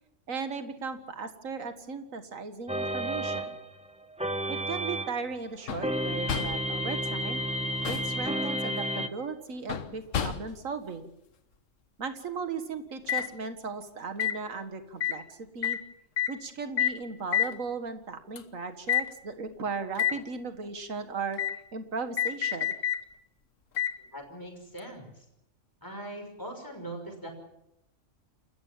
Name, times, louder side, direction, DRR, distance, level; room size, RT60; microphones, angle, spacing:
voice 1, 0.3-3.6 4.5-7.4 7.9-11.1 12.0-15.8 16.3-21.4 21.7-22.7, right 4 dB, 80° right, 8 dB, 2.1 m, -37 dB
sound 1, 2.7-5.3 5.8-9.1, right 1 dB, 5° right, 1.0 m, -31 dB
sound 2, 5.7-6.0 6.3-6.7 7.6-8.2 9.7-10.7 13.1-13.3 14.2-14.4 15.0-15.2 15.6-15.8 16.2-16.4 16.8-17.0 17.3-17.6 18.4-18.5 18.9-19.1 19.9-20.2 21.4-21.6 22.2-23.0 23.8-24.0 24.8-24.9, left 9 dB, 75° left, 1.5 m, -29 dB
voice 2, 24.0-25.2 25.8-27.3, right 1 dB, 15° left, 3 dB, 5.6 m, -41 dB
28.5 x 14.5 x 7.4 m, 0.83 s
omnidirectional pair, 1.4 m